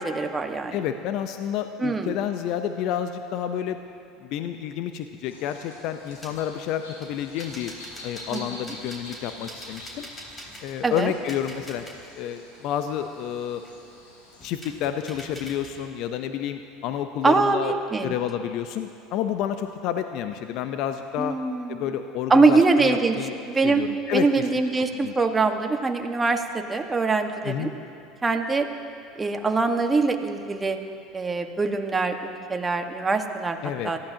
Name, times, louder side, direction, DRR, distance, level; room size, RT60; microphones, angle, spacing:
voice 1, 0.0-0.8 1.8-2.1 8.3-8.6 10.8-11.1 17.2-18.1 21.2-21.9 22.3-23.2 23.5-23.8 24.1-27.7 28.2-28.7 29.2-30.8 31.1-33.6 33.8-34.0, right 3 dB, 20° right, 4 dB, 1.4 m, -23 dB
voice 2, 0.7-3.8 4.2-7.7 8.0-10.1 10.6-11.9 12.2-13.6 14.4-17.8 18.0-21.4 21.7-23.3 23.6-24.3 24.9-25.1 27.4-27.7 33.6-33.9, left 10 dB, 60° left, 8 dB, 0.7 m, -30 dB
sound 1, 5.3-14.4, left 1 dB, 80° left, 3.6 m, -46 dB
sound 2, 6.0-6.5 7.0-12.2 12.5-13.9 14.3-15.9, equal, 20° left, 3.8 m, -45 dB
27.0 x 14.5 x 2.9 m, 2.5 s
hypercardioid pair, 70°, 0 cm